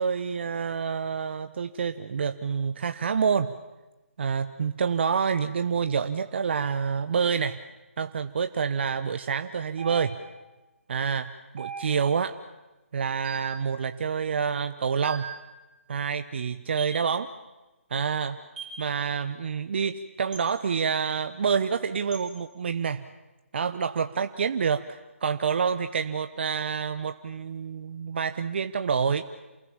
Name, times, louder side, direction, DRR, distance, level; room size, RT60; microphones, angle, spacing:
voice 1, 0.0-3.5 4.2-7.6 8.0-10.2 10.9-12.3 12.9-15.3 15.9-17.3 17.9-18.4 18.8-23.1 23.5-29.2, right 6 dB, 50° right, 10 dB, 0.9 m, -27 dB
sound 1, 9.8-10.5 11.6-12.2 13.2-13.7 15.0-15.5 16.8-17.0 18.6-18.8 20.3-20.5 22.1-22.3, right 6 dB, 35° right, 6.4 m, -39 dB
28.0 x 20.5 x 7.3 m, 1.1 s
figure-of-eight pair, 155°, 7 cm